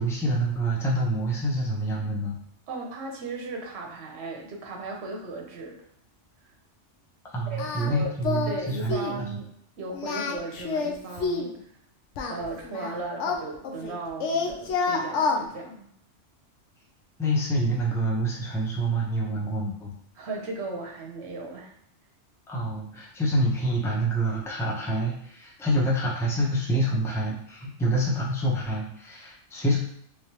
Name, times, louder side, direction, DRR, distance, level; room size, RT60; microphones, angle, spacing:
voice 1, 0.0-2.4 7.3-9.3 17.2-19.9 22.5-29.8, right 1 dB, 5° left, -4 dB, 0.6 m, -27 dB
voice 2, 2.7-5.8 6.4-6.5 7.5-8.1 8.5-9.5 9.8-11.7 12.3-15.9 20.2-21.7, right 3 dB, 65° right, 1 dB, 1.0 m, -36 dB
Singing, 7.6-7.9 8.2-8.6 8.9-9.2 9.9-11.5 12.2-13.9 14.2-15.4, left 4 dB, 80° left, 0.9 m, -28 dB
3.4 x 3.1 x 2.9 m, 0.68 s
omnidirectional pair, 1.2 m